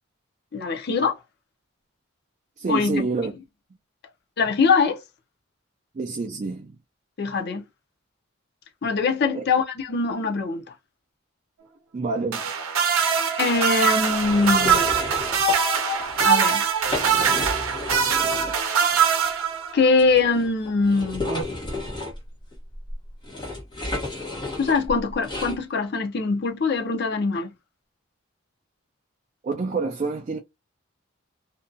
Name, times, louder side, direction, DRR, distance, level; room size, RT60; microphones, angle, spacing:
voice 1, 0.5-1.2 2.7-3.1 4.4-5.0 7.2-7.6 8.8-10.6 13.4-15.0 15.6-15.7 16.2-16.6 19.7-21.3 24.6-27.5, left 4 dB, 50° left, 0.5 m, -22 dB
voice 2, 2.6-3.3 6.0-6.7 9.3-9.4 11.9-12.4 29.4-30.4, right 3 dB, 35° right, 0.3 m, -27 dB
sound 1, 12.3-19.9 21.3-21.4, right 6 dB, 85° right, 0.6 m, -22 dB
sound 2, 14.2-15.6 16.0-16.3 16.7-18.6 18.9-19.0 20.0-25.6, left 2 dB, 20° left, 0.9 m, -32 dB
2.6 x 2.2 x 2.5 m
head